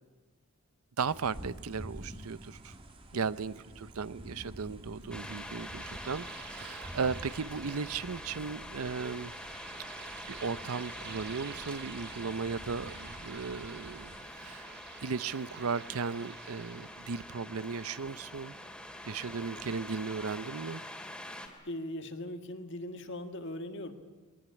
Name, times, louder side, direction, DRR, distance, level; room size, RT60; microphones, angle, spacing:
sound 1, 1.0-14.2, right 1 dB, 25° right, 1.7 m, -49 dB
voice 1, 1.0-2.7 3.1-9.3 9.9-14.7 15.0-18.6 19.1-20.8, right 5 dB, 75° right, 17 dB, 0.6 m, -36 dB
sound 2, 5.0-17.3, right 9 dB, 45° right, 0.8 m, -52 dB
sound 3, 5.1-21.5, left 1 dB, 5° left, 2.5 m, -45 dB
voice 2, 21.7-23.9, left 1 dB, 55° left, 7 dB, 1.8 m, -39 dB
22.0 x 19.0 x 10.0 m, 1.3 s
head